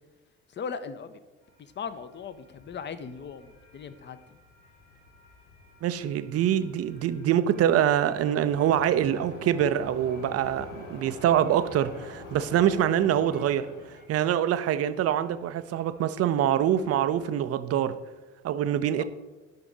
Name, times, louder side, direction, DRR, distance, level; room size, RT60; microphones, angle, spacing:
voice 1, 0.5-1.2 1.6-4.4 19.0-19.1, left 6 dB, 30° left, 12 dB, 0.7 m, -38 dB
sound 1, 1.4-17.3, left 2 dB, 70° left, 3.1 m, -48 dB
voice 2, 5.8-13.7 14.1-17.9 18.4-19.0, right 10 dB, 40° right, 12 dB, 0.6 m, -25 dB
11.5 x 5.9 x 3.9 m, 1.2 s
figure-of-eight pair, 55°, 39 cm